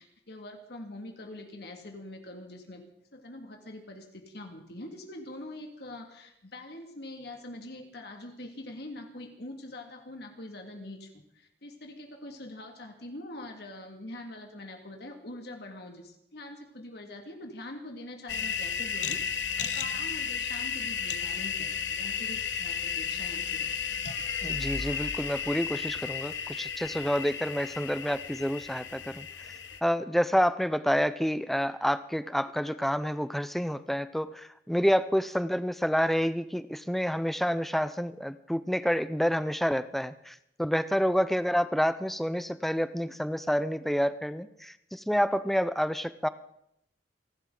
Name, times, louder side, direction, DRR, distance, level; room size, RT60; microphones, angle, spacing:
voice 1, 0.0-2.8 3.1-24.2, left 1 dB, 65° left, 3 dB, 2.1 m, -44 dB
sound 1, 18.3-29.8, left 7 dB, 90° left, 1.1 m, -33 dB
voice 2, 24.4-29.3 29.8-46.3, equal, ahead, 13 dB, 0.5 m, -28 dB
29.0 x 12.0 x 3.9 m, 0.76 s
head